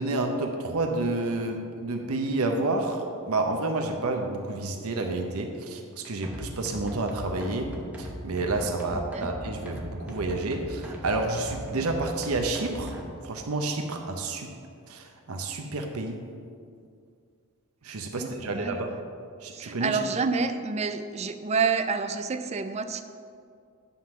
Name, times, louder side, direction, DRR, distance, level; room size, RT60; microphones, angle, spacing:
voice 1, 0.0-13.0 13.2-14.5 14.9-16.2 17.8-19.0 19.4-20.0, right 2 dB, 75° right, 3 dB, 0.7 m, -30 dB
sound 1, 6.2-13.0, equal, 5° right, 0.8 m, -39 dB
voice 2, 18.2-19.0 19.5-23.0, right 4 dB, 30° right, 9 dB, 0.4 m, -28 dB
10.0 x 3.8 x 5.8 m, 2.3 s
head